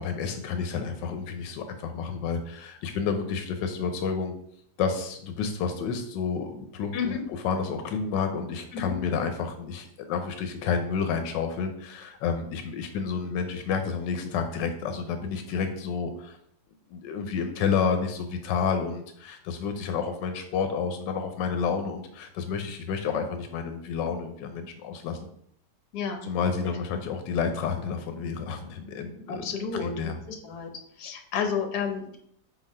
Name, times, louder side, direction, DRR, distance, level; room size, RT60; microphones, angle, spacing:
voice 1, 0.0-4.3 4.8-7.2 7.4-16.4 16.9-25.2 26.2-29.4 29.8-30.2, left 6 dB, 90° left, 7 dB, 1.3 m, -30 dB
voice 2, 6.9-7.2 8.7-9.0 25.9-26.3 29.3-30.7 31.0-32.2, left 6 dB, 70° left, 4 dB, 1.4 m, -31 dB
4.6 x 4.0 x 5.3 m, 0.70 s
omnidirectional pair, 1.9 m